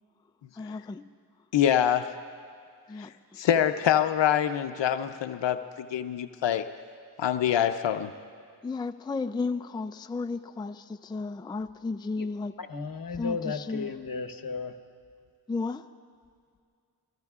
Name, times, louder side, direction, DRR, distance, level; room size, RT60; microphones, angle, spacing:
voice 1, 0.5-1.0 2.9-3.4 8.6-12.6 13.1-14.0 15.5-15.9, left 3 dB, 10° left, 9 dB, 0.4 m, -34 dB
voice 2, 1.5-2.1 3.0-3.1 3.4-6.7 7.2-8.1, left 10 dB, 90° left, 9 dB, 0.6 m, -25 dB
voice 3, 12.6-14.8, left 5 dB, 55° left, 7 dB, 1.1 m, -34 dB
26.0 x 22.0 x 2.4 m, 2.2 s
cardioid pair, 55°, 42 cm